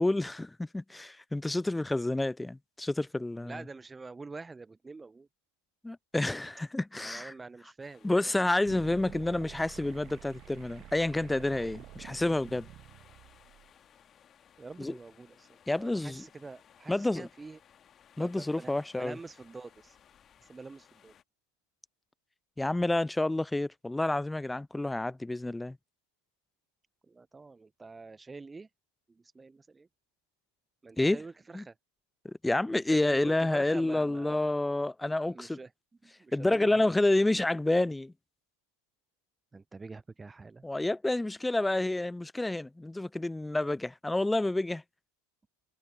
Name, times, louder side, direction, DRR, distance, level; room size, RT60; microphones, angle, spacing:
voice 1, 0.0-3.6 5.8-7.3 8.0-12.7 14.8-15.0 15.7-16.3 16.9-17.3 18.2-19.2 22.6-25.8 31.0-31.2 31.5-31.6 32.2-35.6 36.3-38.1 40.6-44.8, left 2 dB, 5° left, 0.3 m, -29 dB
voice 2, 3.4-5.3 6.9-8.3 14.6-15.5 15.8-17.6 18.2-20.0 20.5-21.1 27.1-28.7 29.2-29.9 30.8-31.7 32.7-34.4 35.3-35.7 36.0-36.9 39.5-40.6, right 3 dB, 10° right, 0.8 m, -46 dB
sound 1, 7.8-21.2, left 9 dB, 25° left, 2.3 m, -61 dB
sound 2, 8.7-13.7, right 15 dB, 35° right, 1.6 m, -49 dB
figure-of-eight pair, 90°, 0 cm